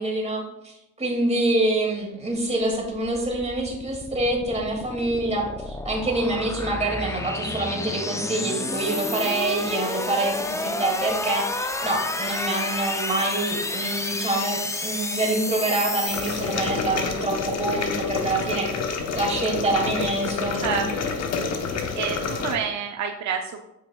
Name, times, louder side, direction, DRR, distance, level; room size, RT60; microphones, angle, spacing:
voice 1, 0.0-18.7 19.1-20.9, right 2 dB, 20° right, -1 dB, 2.2 m, -26 dB
sound 1, 2.5-17.1, left 2 dB, 10° left, 0.4 m, -31 dB
sound 2, 16.1-22.6, left 5 dB, 60° left, 1.0 m, -28 dB
voice 2, 20.6-21.2 21.5-21.6 22.0-23.6, right 7 dB, 65° right, 4 dB, 0.6 m, -29 dB
8.5 x 5.4 x 2.3 m, 0.88 s
cardioid pair, 90°, 30 cm